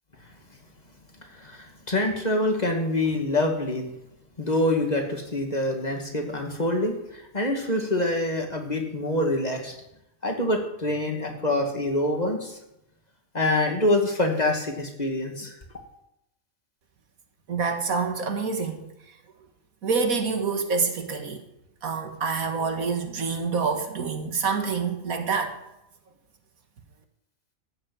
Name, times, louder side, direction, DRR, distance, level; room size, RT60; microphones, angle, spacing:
voice 1, 1.4-3.9 4.4-9.7 10.2-12.6 13.3-15.6, left 1 dB, 30° left, 2 dB, 2.1 m, -25 dB
voice 2, 17.5-18.8 19.8-21.4 21.8-25.6, right 5 dB, 80° right, 6 dB, 2.0 m, -27 dB
14.5 x 6.5 x 8.8 m, 0.83 s
omnidirectional pair, 1.5 m